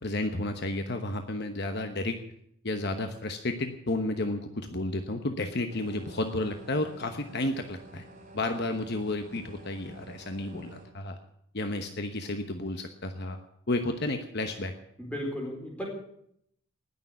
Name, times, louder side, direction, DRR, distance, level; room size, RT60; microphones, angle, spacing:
voice 1, 0.0-2.2 2.6-8.0 8.3-11.2 11.5-13.4 13.7-14.7, left 2 dB, 50° left, 6 dB, 1.1 m, -32 dB
sound 1, 5.7-10.9, right 2 dB, 35° right, 2.9 m, -50 dB
voice 2, 15.0-15.8, equal, 5° left, -1 dB, 4.4 m, -35 dB
19.0 x 6.9 x 9.6 m, 0.73 s
head